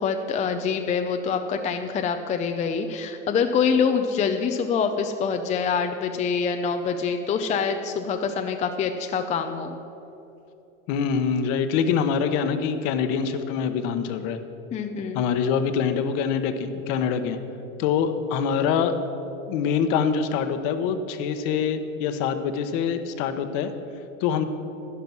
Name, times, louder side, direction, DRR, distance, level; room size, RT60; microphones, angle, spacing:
voice 1, 0.0-9.8 14.7-15.2, left 6 dB, 15° left, 6 dB, 0.5 m, -25 dB
voice 2, 10.9-14.4 15.1-17.4 17.8-19.0 19.5-23.7 24.2-24.4, left 7 dB, 50° left, 9 dB, 1.1 m, -24 dB
11.5 x 10.5 x 6.1 m, 3.0 s
supercardioid pair, 120°, 40 cm